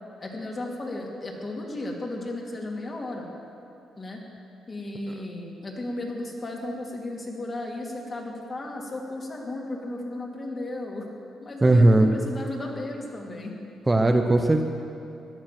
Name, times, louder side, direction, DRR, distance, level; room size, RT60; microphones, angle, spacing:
voice 1, 0.2-3.3 4.0-4.2 4.7-11.1 11.4-13.5, left 2 dB, 35° left, -1 dB, 2.8 m, -34 dB
voice 2, 11.6-12.1 13.9-14.6, right 2 dB, 20° right, 4 dB, 0.9 m, -18 dB
17.0 x 11.0 x 6.0 m, 2.7 s
cardioid pair, 90°, 0 cm